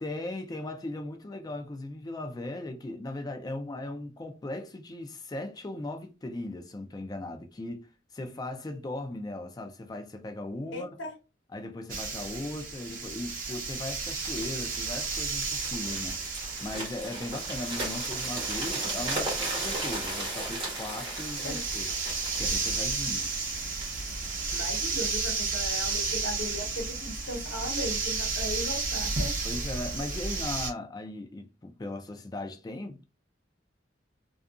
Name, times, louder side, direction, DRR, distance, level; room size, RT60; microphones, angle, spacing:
voice 1, 0.0-10.9 11.5-16.2 16.6-21.9 22.4-23.3 29.4-33.1, left 2 dB, 20° left, 0.3 m, -38 dB
voice 2, 10.7-11.1 21.4-21.6 24.5-29.3, left 1 dB, 80° left, 0.9 m, -37 dB
sound 1, 11.9-30.7, right 4 dB, 45° right, 0.8 m, -33 dB
sound 2, 14.2-26.1 26.7-26.9, right 2 dB, 25° right, 1.2 m, -38 dB
2.7 x 2.4 x 2.4 m
head